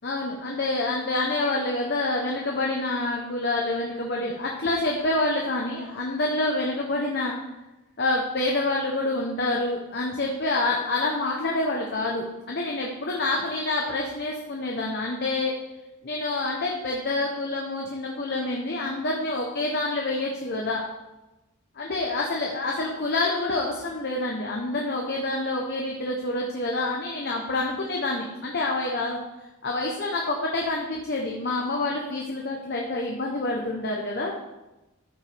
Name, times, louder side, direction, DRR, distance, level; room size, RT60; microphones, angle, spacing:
voice 1, 0.0-7.3 8.0-15.5 16.0-20.8 21.7-29.2 29.6-34.3, left 2 dB, 50° left, -1 dB, 1.0 m, -27 dB
13.0 x 5.7 x 3.5 m, 1.0 s
head